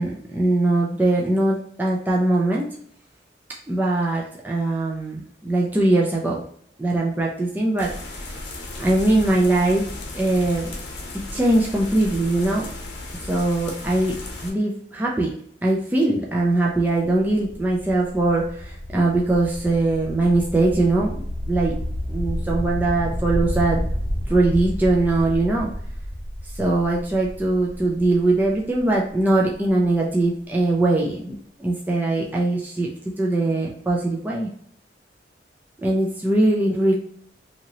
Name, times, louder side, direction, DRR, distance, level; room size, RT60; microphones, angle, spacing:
voice 1, 0.0-2.7 3.7-6.4 6.8-7.9 8.8-9.9 10.1-10.8 11.1-12.7 13.2-14.1 14.4-15.3 15.6-21.1 21.5-21.8 22.1-23.8 24.3-25.7 26.5-31.3 31.6-32.9 33.2-34.5 35.8-36.9, right 2 dB, 10° right, -3 dB, 0.3 m, -21 dB
sound 1, 7.8-14.5, left 2 dB, 85° left, 0.8 m, -35 dB
sound 2, 16.3-30.0, equal, 30° left, 0.9 m, -31 dB
2.8 x 2.7 x 2.8 m, 0.65 s
head